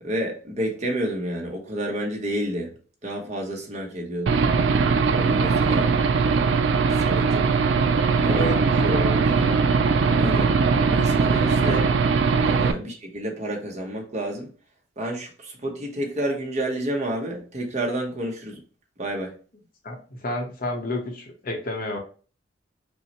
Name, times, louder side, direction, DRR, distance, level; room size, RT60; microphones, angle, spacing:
voice 1, 0.0-2.7 3.0-4.4 5.1-5.9 7.0-7.5 8.2-9.0 9.3-9.5 10.2-10.5 10.9-11.8 12.4-14.5 15.0-18.6 19.0-19.3, right 1 dB, 40° right, 0.9 m, -30 dB
Aircraft / Engine, 4.3-12.7, right 5 dB, 70° right, 0.4 m, -20 dB
voice 2, 8.3-9.6 10.3-10.4 11.6-11.8 12.7-12.8 19.8-22.0, left 1 dB, 50° left, 0.8 m, -31 dB
5.4 x 2.1 x 2.9 m
head